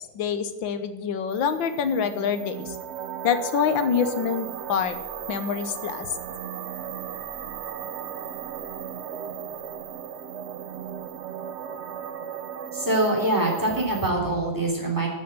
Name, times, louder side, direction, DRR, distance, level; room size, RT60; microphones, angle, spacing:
voice 1, 0.1-2.8 3.2-5.0 5.3-6.1, left 7 dB, 80° left, 10 dB, 1.8 m, -26 dB
sound 1, 1.3-14.1, right 8 dB, 70° right, 0.6 m, -36 dB
voice 2, 12.7-15.1, right 1 dB, 10° right, -1 dB, 3.1 m, -24 dB
12.5 x 6.3 x 8.0 m, 1.2 s
omnidirectional pair, 2.0 m